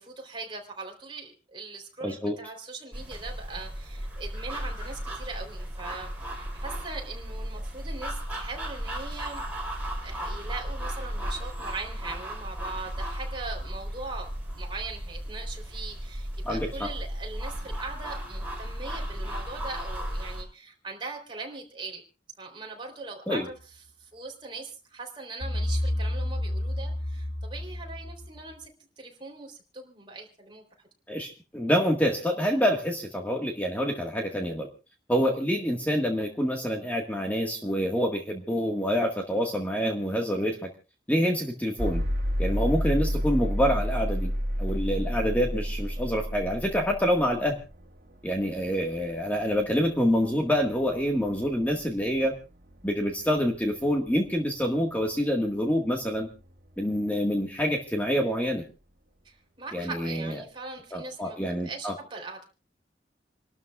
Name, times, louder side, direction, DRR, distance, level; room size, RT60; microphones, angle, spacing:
voice 1, 0.0-6.1 6.4-9.4 10.0-22.0 22.4-23.6 24.0-28.7 29.0-30.6 59.3-61.4 61.6-62.4, right 3 dB, 30° right, 1 dB, 3.5 m, -41 dB
voice 2, 2.0-2.3 16.4-16.9 23.3-23.4 31.1-34.7 35.1-40.7 41.1-42.0 42.4-44.3 44.6-47.6 48.2-52.3 52.8-56.3 56.8-58.6 59.7-60.4 60.9-61.9, equal, 10° left, 1 dB, 1.7 m, -27 dB
sound 1, 2.9-20.4, equal, 10° right, 6.0 m, -35 dB
sound 2, 25.4-28.5, left 1 dB, 80° left, 1.3 m, -30 dB
sound 3, 41.8-57.7, equal, 60° right, 2.4 m, -33 dB
28.5 x 12.5 x 2.4 m, 0.31 s
head